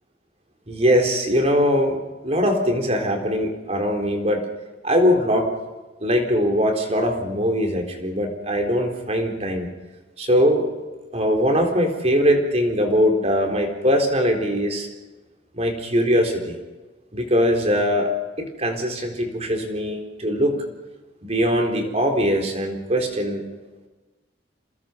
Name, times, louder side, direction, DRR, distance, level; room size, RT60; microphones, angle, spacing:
voice 1, 0.7-2.0 2.2-4.5 4.8-5.5 6.0-9.7 10.2-10.7 11.1-14.9 15.5-16.6 17.1-18.1 18.4-20.6 21.2-23.4, equal, 35° right, 2 dB, 4.0 m, -21 dB
28.0 x 21.0 x 5.3 m, 1.2 s
head